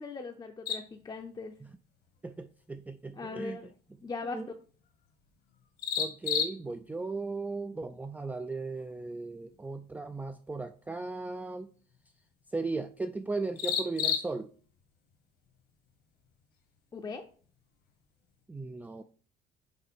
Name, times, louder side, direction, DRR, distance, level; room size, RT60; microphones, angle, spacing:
voice 1, 0.0-1.5 3.1-3.7 4.0-4.4 16.9-17.2, left 4 dB, 25° left, 4 dB, 0.7 m, -39 dB
sound 1, 0.7-18.5, left 8 dB, 70° left, 1.5 m, -41 dB
voice 2, 2.2-3.7 4.2-4.5 6.0-11.7 12.5-14.5 18.5-19.0, right 3 dB, 10° right, 8 dB, 0.4 m, -37 dB
5.4 x 5.3 x 4.3 m, 0.43 s
cardioid pair, 110°, 17 cm